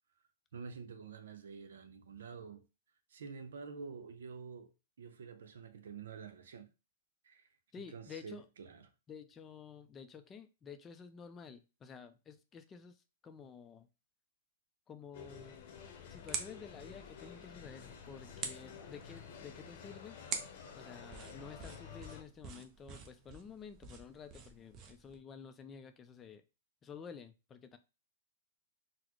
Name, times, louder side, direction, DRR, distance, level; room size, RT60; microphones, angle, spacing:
voice 1, 0.5-2.6 3.1-4.7 5.0-6.7 7.2-7.5 7.8-8.9, right 5 dB, 80° right, 0.6 m, -48 dB
voice 2, 7.7-8.4 9.1-13.0 13.2-13.9 14.9-15.7 16.1-20.2 20.8-26.4 26.8-27.8, left 6 dB, 20° left, 0.4 m, -51 dB
sound 1, 15.1-22.2, left 6 dB, 55° left, 0.8 m, -51 dB
sound 2, 15.2-25.2, right 5 dB, 30° right, 0.6 m, -48 dB
3.9 x 2.0 x 3.0 m
hypercardioid pair, 140°, 0 cm